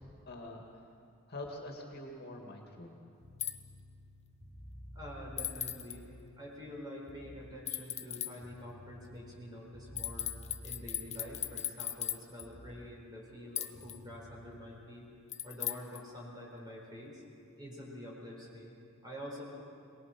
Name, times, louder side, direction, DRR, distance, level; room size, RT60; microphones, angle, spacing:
voice 1, 0.3-0.6 1.3-2.9, left 1 dB, 50° left, 1 dB, 2.2 m, -45 dB
sound 1, 3.2-6.3 7.1-7.5 8.4-11.6 12.4-12.8 13.7-15.0, equal, 80° right, 3.5 m, -52 dB
sound 2, 3.4-3.6 5.4-6.0 7.7-8.3 10.0-12.5 13.6-14.0 15.3-16.0, left 11 dB, 30° left, 0.8 m, -37 dB
voice 2, 4.9-6.1 6.4-10.3 10.6-15.0 15.4-17.2 17.6-19.4, equal, 20° right, -2 dB, 4.7 m, -47 dB
23.0 x 19.5 x 6.0 m, 2.5 s
head